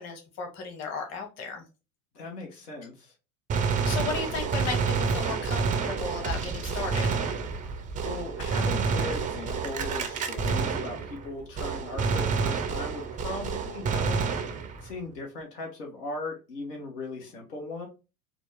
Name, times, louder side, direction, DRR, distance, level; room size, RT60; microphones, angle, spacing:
voice 1, 0.0-1.6 3.8-7.1, left 4 dB, 35° left, 3 dB, 1.4 m, -35 dB
voice 2, 2.1-3.1 8.0-14.2 14.8-17.9, left 3 dB, 80° left, 1 dB, 1.5 m, -38 dB
Gunshot gunfire, 3.5-11.3 11.6-14.9, right 5 dB, 20° right, 0.4 m, -29 dB
4.1 x 2.3 x 3.4 m, 0.30 s
hypercardioid pair, 90°, 48 cm